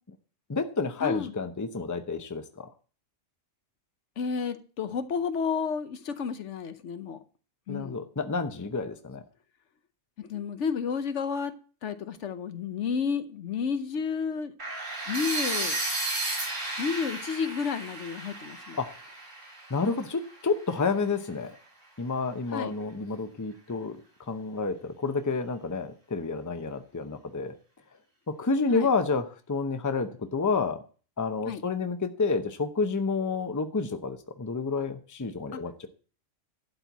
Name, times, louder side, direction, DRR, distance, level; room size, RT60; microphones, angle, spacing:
voice 1, 0.5-2.7 7.7-9.2 18.8-18.9 19.7-21.5 22.0-24.0 24.3-27.5 28.4-30.8 31.2-35.9, left 4 dB, 20° left, 8 dB, 0.7 m, -29 dB
voice 2, 1.0-1.3 4.2-7.2 7.7-8.0 10.2-11.5 11.8-14.5 15.1-15.8 16.8-18.8 22.5-22.7 28.7-28.9 31.5-31.6 35.5-35.6, left 6 dB, 70° left, 11 dB, 1.1 m, -31 dB
sound 1, 14.6-20.5, right 2 dB, 80° right, 3.9 m, -33 dB
11.5 x 4.5 x 8.2 m, 0.39 s
omnidirectional pair, 1.3 m